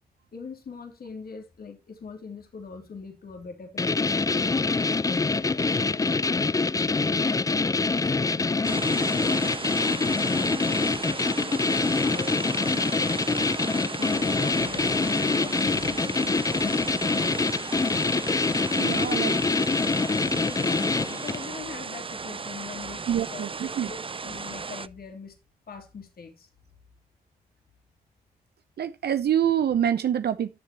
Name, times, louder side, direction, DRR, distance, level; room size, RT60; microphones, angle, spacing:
voice 1, 0.3-4.5 5.0-6.5 6.9-11.6 12.0-13.2 13.9-17.3 20.2-25.4 25.7-26.5, left 5 dB, 60° left, 3.5 m, -42 dB
sound 1, 3.8-21.5, left 3 dB, 20° left, 0.4 m, -25 dB
sound 2, 8.6-24.9, right 4 dB, 30° right, 0.6 m, -36 dB
voice 2, 18.8-19.4 23.1-23.9 28.8-30.6, right 9 dB, 65° right, 0.9 m, -26 dB
14.5 x 7.2 x 3.0 m
supercardioid pair, 45°, 18 cm